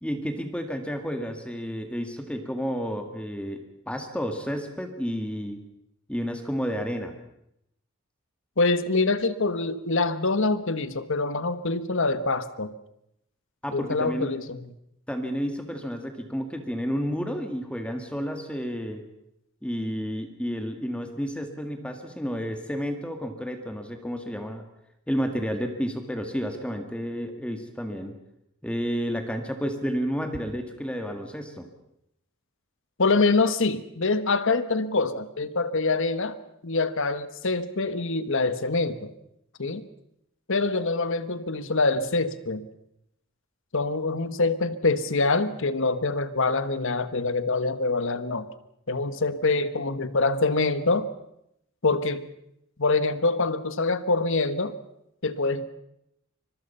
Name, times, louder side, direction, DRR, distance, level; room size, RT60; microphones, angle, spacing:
voice 1, 0.0-5.6 6.1-7.1 13.6-14.3 15.1-19.0 19.6-24.6 25.1-28.1 28.6-31.7, equal, 5° left, 6 dB, 1.9 m, -31 dB
voice 2, 8.6-12.7 13.7-14.6 33.0-36.3 36.6-39.1 39.6-39.8 40.5-42.7 43.7-48.5 48.9-51.1 51.8-52.3 52.8-54.7 55.2-55.7, left 3 dB, 65° left, 13 dB, 1.4 m, -25 dB
25.0 x 22.5 x 5.6 m, 0.80 s
head